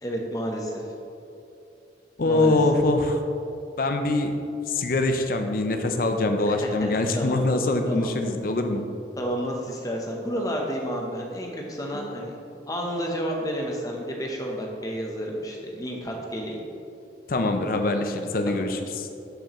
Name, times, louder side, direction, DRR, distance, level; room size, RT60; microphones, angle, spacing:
voice 1, 0.0-0.9 2.2-2.6 6.4-7.4 7.8-8.1 9.2-12.3 12.7-16.6 18.5-18.6, equal, 20° left, 0 dB, 0.8 m, -31 dB
voice 2, 2.2-3.2 3.8-4.4 4.7-8.8 11.9-12.1 17.3-19.1, left 2 dB, 50° left, 6 dB, 0.5 m, -24 dB
11.5 x 4.6 x 3.0 m, 2.7 s
head